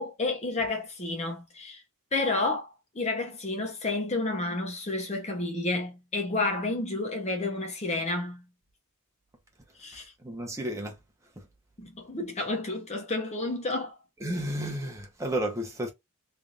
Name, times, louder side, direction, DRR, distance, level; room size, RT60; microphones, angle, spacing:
voice 1, 0.0-1.8 2.1-2.7 2.9-8.4 9.8-10.1 11.8-14.0, left 2 dB, 30° left, 0.8 m, -30 dB
voice 2, 10.2-11.0 14.2-15.9, right 1 dB, 15° right, 0.9 m, -32 dB
3.3 x 2.5 x 3.8 m
head